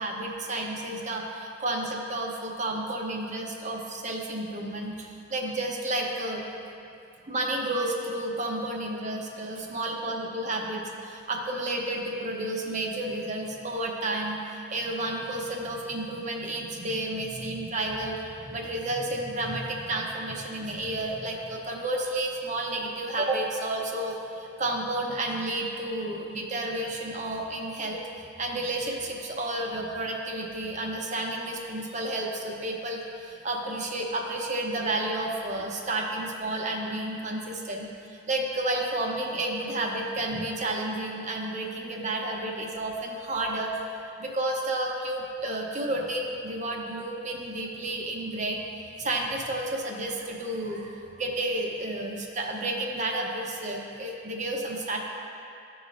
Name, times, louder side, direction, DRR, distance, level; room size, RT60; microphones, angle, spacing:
voice 1, 0.0-6.4 7.2-43.7 44.2-48.6 49.0-55.0, right 1 dB, 40° right, 0 dB, 0.8 m, -31 dB
14.0 x 5.0 x 2.6 m, 2.6 s
head